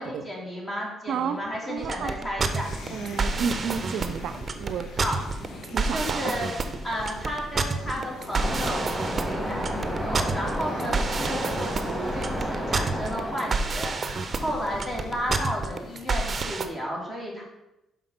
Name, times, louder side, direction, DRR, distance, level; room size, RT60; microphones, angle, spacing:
voice 1, 0.0-2.7 5.0-5.2 5.9-6.5 6.8-17.4, equal, 25° left, -3 dB, 3.0 m, -33 dB
voice 2, 1.1-1.4 1.7-2.2 2.9-4.9 5.7-6.3 14.4-14.6, right 7 dB, 75° right, 10 dB, 0.5 m, -31 dB
sound 1, 1.8-16.7, right 4 dB, 35° right, 0.7 m, -29 dB
sound 2, 2.5-16.5, left 2 dB, 70° left, 1.4 m, -43 dB
Waves surf, 8.3-13.6, equal, 5° right, 2.4 m, -31 dB
5.9 x 5.2 x 5.8 m, 0.91 s
cardioid pair, 90°, 0 cm